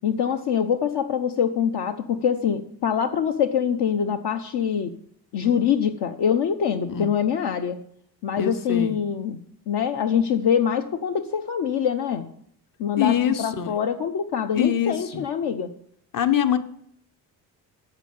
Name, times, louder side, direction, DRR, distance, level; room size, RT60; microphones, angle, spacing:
voice 1, 0.0-4.9 5.3-7.8 8.2-9.4 9.7-12.3 12.8-15.7, left 7 dB, 65° left, 6 dB, 1.0 m, -24 dB
voice 2, 8.4-9.0 13.0-13.7 14.5-15.2 16.1-16.6, left 9 dB, 50° left, 10 dB, 1.2 m, -24 dB
8.2 x 7.7 x 7.6 m, 0.66 s
supercardioid pair, 75°, 43 cm